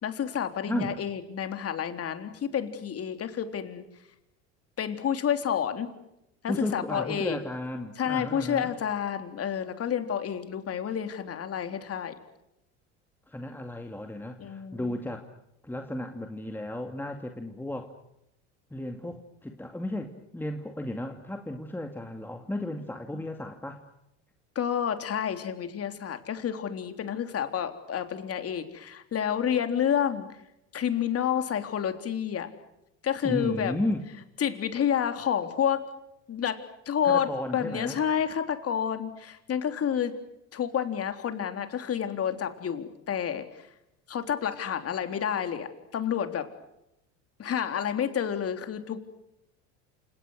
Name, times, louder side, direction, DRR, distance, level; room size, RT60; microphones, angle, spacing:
voice 1, 0.0-3.8 4.8-5.9 6.4-7.4 8.0-12.1 14.4-14.9 23.1-23.2 24.6-30.3 30.7-32.5 33.0-33.7 34.4-35.8 36.3-40.1 40.5-43.6 44.1-46.5 47.4-49.0, left 8 dB, 40° left, 7 dB, 3.6 m, -29 dB
voice 2, 0.7-1.0 6.5-8.7 13.3-15.3 15.6-17.9 18.7-23.8 33.2-34.1 37.0-38.0, left 1 dB, 5° left, 4 dB, 2.3 m, -34 dB
28.5 x 27.5 x 6.5 m, 0.84 s
supercardioid pair, 90°, 36 cm